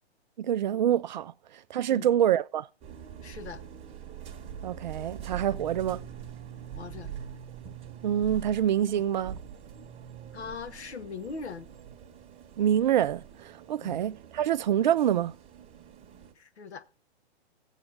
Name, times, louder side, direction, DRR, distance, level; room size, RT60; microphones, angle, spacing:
voice 1, 0.4-1.3 1.7-2.7 4.6-6.0 8.0-9.4 12.6-13.2 13.7-15.3, right 10 dB, 45° right, 0.4 m, -26 dB
sound 1, 2.8-16.3, right 8 dB, 15° right, 1.1 m, -44 dB
voice 2, 3.2-3.6 6.7-7.1 8.9-9.0 10.3-11.7 13.8-14.0 16.3-16.9, left 5 dB, 75° left, 1.2 m, -40 dB
15.5 x 8.1 x 3.4 m
hypercardioid pair, 130°, 33 cm